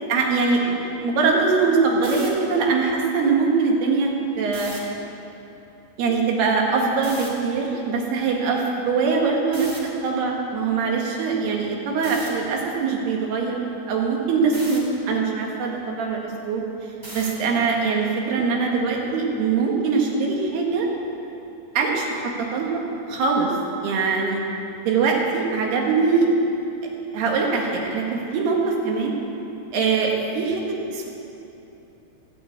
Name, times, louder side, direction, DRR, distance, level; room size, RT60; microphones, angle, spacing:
voice 1, 0.1-4.1 4.4-4.8 6.0-13.6 13.9-16.6 17.1-20.9 21.8-22.8 23.1-23.5 23.8-24.4 24.9-26.3 27.1-28.6 28.9-29.1 29.7-31.1, right 4 dB, 90° right, 0 dB, 3.8 m, -22 dB
sound 1, 2.0-2.3 4.5-4.8 7.0-7.3 9.5-9.8 12.0-12.3 14.5-14.8 17.0-17.4, right 1 dB, 15° right, 2.5 m, -36 dB
16.0 x 9.2 x 8.5 m, 2.9 s
omnidirectional pair, 4.5 m